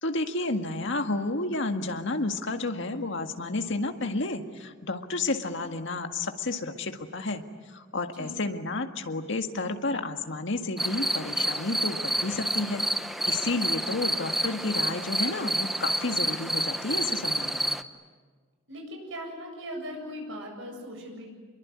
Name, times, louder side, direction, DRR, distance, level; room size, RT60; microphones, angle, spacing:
voice 1, 0.0-7.4 7.7-17.7, left 2 dB, 65° left, 6 dB, 1.9 m, -31 dB
voice 2, 8.1-8.5 18.7-21.3, equal, 70° right, 2 dB, 7.8 m, -39 dB
sound 1, 10.8-17.8, equal, ahead, 0.9 m, -29 dB
26.5 x 23.0 x 9.8 m, 1.5 s
head